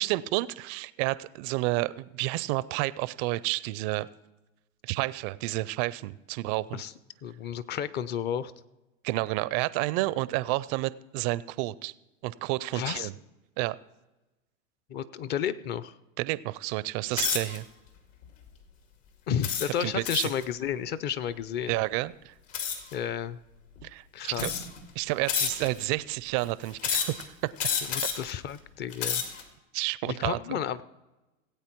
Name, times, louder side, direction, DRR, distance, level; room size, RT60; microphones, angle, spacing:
voice 1, 0.0-4.1 4.8-6.8 9.0-11.9 12.2-13.1 13.6-13.8 16.2-17.6 19.8-20.3 21.7-22.3 23.8-24.5 25.0-27.2 27.6-27.7 29.7-30.6, right 19 dB, 35° right, 19 dB, 0.4 m, -30 dB
voice 2, 7.2-8.5 12.7-13.1 14.9-16.0 19.3-21.8 22.9-23.4 24.1-24.7 27.8-29.2 30.0-30.8, left 9 dB, 25° left, 15 dB, 0.5 m, -32 dB
sound 1, 17.1-17.6 18.2-18.5 19.4-20.4 22.5-22.9 23.8-23.9 24.3-24.8 25.3-25.9 26.8-27.2 27.6-28.3 28.8-29.4, left 7 dB, 65° left, 2.3 m, -30 dB
17.0 x 8.4 x 4.5 m, 1.1 s
hypercardioid pair, 110°, 41 cm